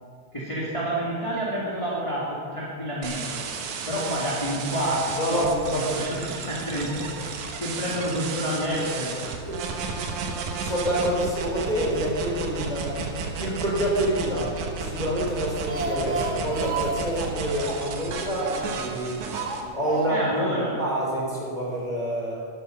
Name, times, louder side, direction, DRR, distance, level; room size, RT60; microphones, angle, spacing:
voice 1, 0.3-3.4 3.9-5.0 5.3-5.4 5.8-9.2 20.1-20.8, equal, 10° left, -6 dB, 1.9 m, -29 dB
sound 1, 3.0-19.6, right 5 dB, 85° right, 2.8 m, -33 dB
voice 2, 5.2-6.2 9.5-9.6 10.6-12.9 13.4-14.4 14.8-19.2 19.7-20.3 20.8-22.4, right 1 dB, 15° right, -4 dB, 3.6 m, -27 dB
Speech, 15.4-18.9 19.3-20.4 20.7-20.8 21.1-21.2, right 2 dB, 50° right, 0.8 m, -32 dB
12.0 x 12.0 x 6.6 m, 2.3 s
omnidirectional pair, 3.3 m